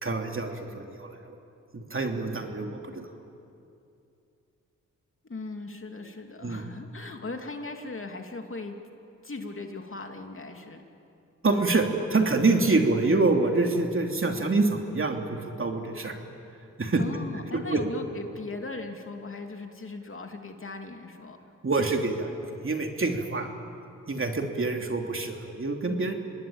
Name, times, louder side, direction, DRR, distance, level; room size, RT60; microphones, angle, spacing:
voice 1, 0.0-1.4 1.7-3.1 6.4-6.6 11.4-16.1 16.8-17.0 17.5-17.8 21.6-23.5 24.1-26.1, right 3 dB, 40° right, 3 dB, 3.0 m, -26 dB
voice 2, 5.2-8.8 9.2-10.8 17.0-21.4, left 3 dB, 40° left, 4 dB, 2.9 m, -38 dB
25.5 x 20.0 x 8.9 m, 2.6 s
supercardioid pair, 50°, 33 cm